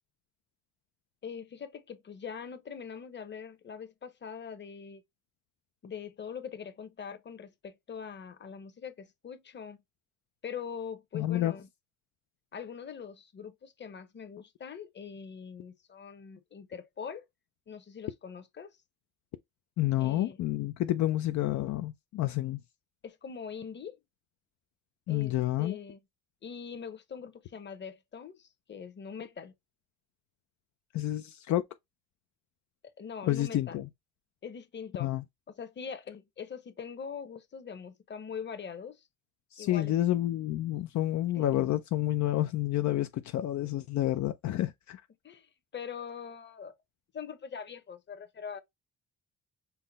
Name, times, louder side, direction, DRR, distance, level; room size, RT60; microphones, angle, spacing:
voice 1, 1.2-5.0 5.8-9.8 10.4-11.7 12.5-17.2 17.7-18.7 20.0-20.4 23.0-23.9 25.1-26.0 26.4-29.5 32.8-33.8 34.4-35.1 35.6-39.0 39.6-39.9 41.4-41.6 45.2-46.7 47.1-48.6, left 6 dB, 35° left, 1.0 m, -42 dB
voice 2, 11.1-11.5 19.8-22.6 25.1-25.8 30.9-31.6 33.2-33.9 35.0-35.2 39.5-45.0, left 14 dB, 70° left, 0.5 m, -29 dB
5.7 x 2.1 x 4.0 m
cardioid pair, 90°, 30 cm